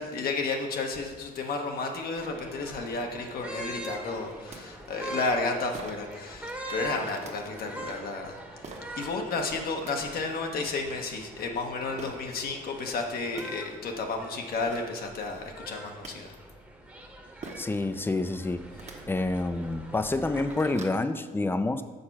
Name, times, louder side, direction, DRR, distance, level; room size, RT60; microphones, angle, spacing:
voice 1, 0.0-16.4, left 3 dB, 65° left, 2 dB, 0.9 m, -32 dB
sound 1, 2.2-20.8, equal, 10° right, 1.0 m, -43 dB
sound 2, 4.5-4.6 5.7-6.1 7.1-7.3 8.6-8.9 9.6-9.9 12.0-12.2 12.9-13.0 13.2-13.5 14.3-14.4 14.7-14.9 15.7-16.1 17.4-17.7 18.7-19.0 19.6-19.7 20.1-21.0, right 3 dB, 45° right, 1.1 m, -43 dB
voice 2, 17.6-18.7 19.1-21.8, left 2 dB, 15° left, 10 dB, 0.4 m, -28 dB
6.6 x 4.3 x 5.8 m, 1.4 s
cardioid pair, 95°, 17 cm